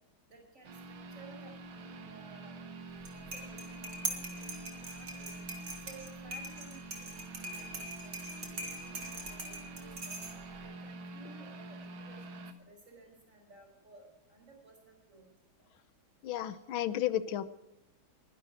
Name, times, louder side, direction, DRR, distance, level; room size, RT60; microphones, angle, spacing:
voice 1, 0.3-1.5 2.0-2.7 3.1-5.4 5.8-10.2 10.6-15.3 16.4-16.6, right 3 dB, 40° right, 2 dB, 5.7 m, -56 dB
sound 1, 0.6-12.5, right 2 dB, 85° right, 2.3 m, -47 dB
sound 2, 2.9-10.6, right 2 dB, 60° right, 3.2 m, -42 dB
voice 2, 16.2-17.5, left 11 dB, 85° left, 14 dB, 1.7 m, -33 dB
22.0 x 11.5 x 4.9 m, 0.94 s
omnidirectional pair, 2.2 m